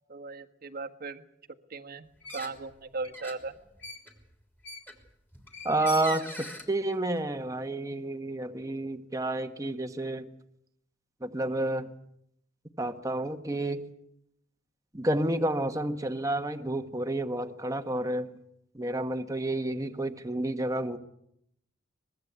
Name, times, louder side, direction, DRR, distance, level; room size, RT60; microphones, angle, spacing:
voice 1, 0.1-1.2 1.7-2.1 2.3-3.5, right 3 dB, 50° right, 5 dB, 1.5 m, -37 dB
sound 1, 2.2-2.7 3.0-6.7, left 1 dB, 10° left, 3.2 m, -42 dB
voice 2, 5.6-10.3 11.2-11.9 12.8-13.8 14.9-18.3 18.7-21.0, right 1 dB, 15° right, 6 dB, 1.4 m, -30 dB
24.0 x 21.0 x 8.2 m, 0.76 s
head